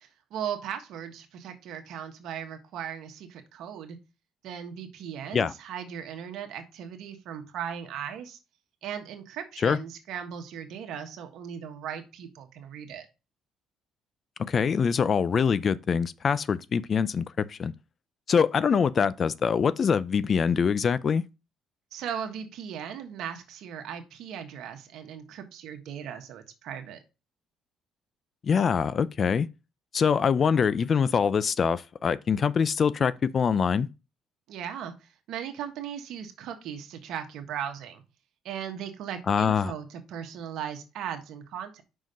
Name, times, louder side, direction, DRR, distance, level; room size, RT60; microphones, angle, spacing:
voice 1, 0.0-4.0 4.4-8.4 8.8-13.1 21.9-27.0 34.5-38.0 38.4-41.8, right 8 dB, 75° right, 1.4 m, -38 dB
voice 2, 14.5-17.7 18.3-21.2 28.4-29.5 29.9-33.9 39.3-39.7, left 6 dB, 45° left, 0.5 m, -24 dB
5.7 x 5.2 x 5.2 m
supercardioid pair, 85°, 0 cm